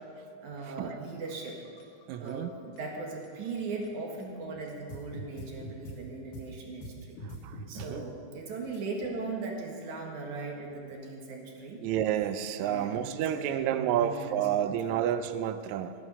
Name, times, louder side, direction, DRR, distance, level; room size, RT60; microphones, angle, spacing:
voice 1, 0.4-1.6 2.2-7.2 7.7-11.8 12.6-15.0, right 3 dB, 65° right, 0 dB, 3.0 m, -39 dB
sound 1, 1.3-3.3 3.8-3.9 4.2-4.3 4.7-6.0 6.3-6.5 6.8-7.9 8.7-8.8, equal, 75° left, 3.1 m, -43 dB
voice 2, 2.1-2.5 7.8-8.0 11.8-15.9, right 10 dB, 85° right, 10 dB, 1.6 m, -30 dB
13.5 x 11.0 x 5.4 m, 2.6 s
omnidirectional pair, 3.9 m